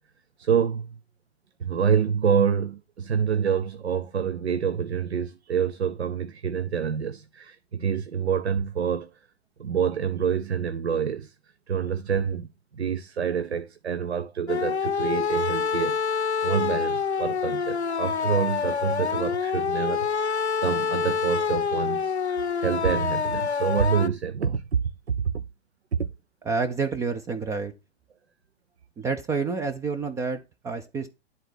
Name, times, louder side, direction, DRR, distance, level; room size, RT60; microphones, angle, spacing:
voice 1, 0.4-1.0 1.6-9.1 9.6-11.3 11.7-24.8 25.1-25.4 25.9-26.1, right 7 dB, 75° right, 0.7 m, -27 dB
sound 1, 14.5-24.1, left 6 dB, 85° left, 0.6 m, -26 dB
voice 2, 26.4-27.7 29.0-31.1, right 4 dB, 10° right, 0.4 m, -28 dB
11.0 x 4.0 x 4.6 m
figure-of-eight pair, 110°, 32 cm